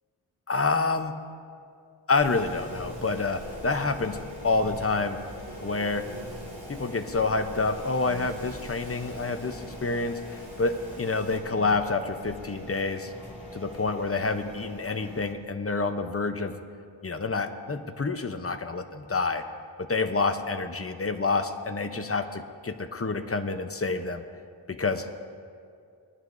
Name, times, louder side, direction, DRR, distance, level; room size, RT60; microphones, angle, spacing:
voice 1, 0.5-1.2 2.1-5.2 5.6-6.1 6.7-13.1 13.5-16.5 17.0-19.5 19.8-24.2 24.7-25.1, left 3 dB, 30° left, 7 dB, 0.7 m, -28 dB
Wind, 2.2-11.4, right 1 dB, 75° right, 2.5 m, -45 dB
sound 1, 2.3-15.3, left 1 dB, 15° right, 2.2 m, -43 dB
21.0 x 11.5 x 2.6 m, 2.3 s
wide cardioid pair, 65°, 48 cm